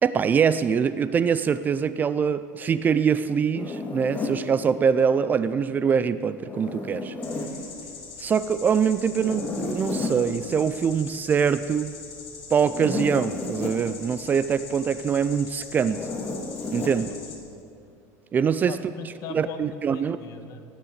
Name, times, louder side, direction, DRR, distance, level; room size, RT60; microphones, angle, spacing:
voice 1, 0.0-7.1 8.2-12.0 12.5-16.1 16.7-17.1 18.3-18.8 19.3-20.2, right 7 dB, 25° right, 14 dB, 0.4 m, -23 dB
Zipper (clothing), 3.5-4.4 6.4-7.5 9.1-10.2 12.6-13.8 15.8-17.0, left 3 dB, 20° left, 1.8 m, -32 dB
sound 1, 7.2-17.3, left 6 dB, 75° left, 3.0 m, -42 dB
voice 2, 18.7-20.6, left 6 dB, 50° left, 8 dB, 1.3 m, -39 dB
19.5 x 7.2 x 8.1 m, 2.4 s
cardioid pair, 140°, 7 cm